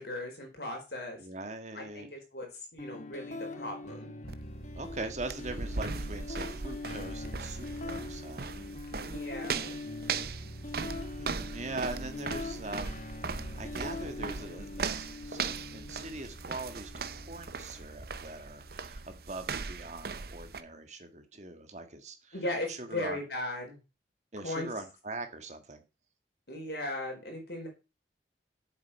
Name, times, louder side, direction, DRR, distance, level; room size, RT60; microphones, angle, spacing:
voice 1, 0.0-1.2 1.7-4.1 9.0-9.8 22.3-23.8 24.4-24.7 26.5-27.7, left 1 dB, 65° left, 4.6 m, -37 dB
voice 2, 1.1-2.1 4.7-8.7 11.2-13.0 13.4-22.4 22.7-23.2 24.3-25.8, right 2 dB, 40° right, 1.7 m, -42 dB
sound 1, 2.8-20.7, left 2 dB, 45° left, 1.1 m, -43 dB
sound 2, 4.3-20.6, right 4 dB, 60° right, 0.8 m, -39 dB
7.9 x 7.8 x 5.6 m
head